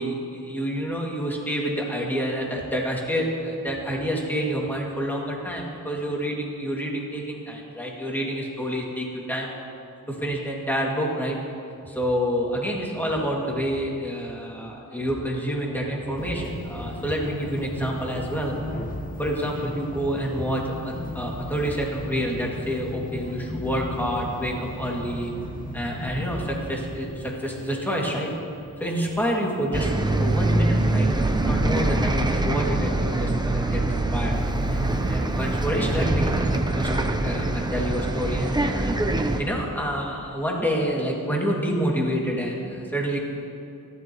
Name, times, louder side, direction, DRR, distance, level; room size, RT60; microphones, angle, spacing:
voice 1, 0.0-9.5 10.1-11.4 11.9-18.6 19.2-25.3 25.7-28.3 28.8-29.9 30.2-34.4 34.7-38.8 39.4-43.2, equal, 5° left, -3 dB, 2.4 m, -28 dB
sound 1, 16.2-29.8, left 1 dB, 25° left, 1.2 m, -36 dB
Bus, 29.7-39.4, right 2 dB, 10° right, 0.7 m, -24 dB
30.0 x 12.5 x 3.1 m, 2.6 s
wide cardioid pair, 165°, 35 cm